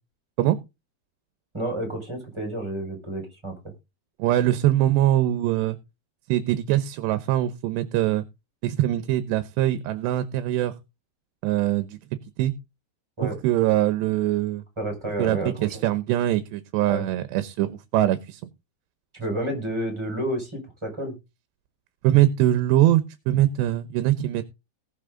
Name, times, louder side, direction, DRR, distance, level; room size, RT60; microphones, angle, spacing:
voice 1, 1.5-3.5 13.2-13.4 14.8-15.8 16.9-17.0 19.1-21.1, right 1 dB, 5° right, 3 dB, 5.1 m, -30 dB
voice 2, 4.2-5.8 6.3-8.3 8.6-10.7 11.4-12.0 12.4-12.5 13.2-14.6 15.2-18.4 22.0-24.4, right 13 dB, 85° right, 12 dB, 3.1 m, -22 dB
19.0 x 6.5 x 3.8 m, 0.26 s
omnidirectional pair, 4.9 m